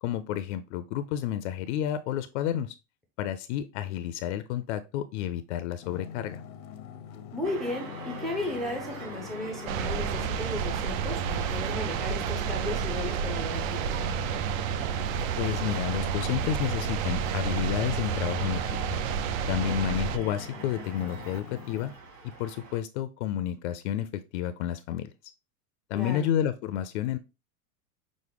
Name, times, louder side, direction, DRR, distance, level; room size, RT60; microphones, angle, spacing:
voice 1, 0.0-2.8 3.2-6.4 15.4-18.6 19.5-21.9 22.4-25.1 25.9-27.2, left 10 dB, 55° left, 12 dB, 0.5 m, -30 dB
sound 1, 5.8-21.9, left 8 dB, 80° left, 0.8 m, -44 dB
voice 2, 7.3-14.0 25.9-26.3, left 2 dB, ahead, 0 dB, 0.4 m, -35 dB
sound 2, 7.4-22.8, right 3 dB, 55° right, 2.2 m, -43 dB
sound 3, 9.7-20.2, right 8 dB, 70° right, 0.6 m, -30 dB
6.1 x 2.1 x 3.4 m, 0.27 s
supercardioid pair, 160°, 41 cm